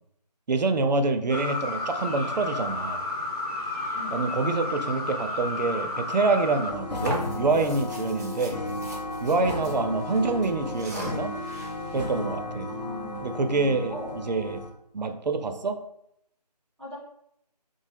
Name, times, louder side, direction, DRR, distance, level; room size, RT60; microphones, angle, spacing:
voice 1, 0.5-3.0 4.1-8.6 9.2-11.3 11.9-12.7 13.2-14.6 14.9-15.8, right 3 dB, 90° right, 7 dB, 0.5 m, -26 dB
sound 1, 1.3-6.7, left 2 dB, 65° left, 1.0 m, -32 dB
sound 2, 6.7-14.7, left 2 dB, 80° left, 0.6 m, -34 dB
sound 3, 6.9-9.7 10.0-10.2 10.6-11.9, equal, 25° right, 0.5 m, -36 dB
voice 2, 12.7-13.2 13.9-14.1 16.8-17.0, left 1 dB, ahead, -10 dB, 1.1 m, -39 dB
2.8 x 2.0 x 3.3 m, 0.75 s
figure-of-eight pair, 170°, 21 cm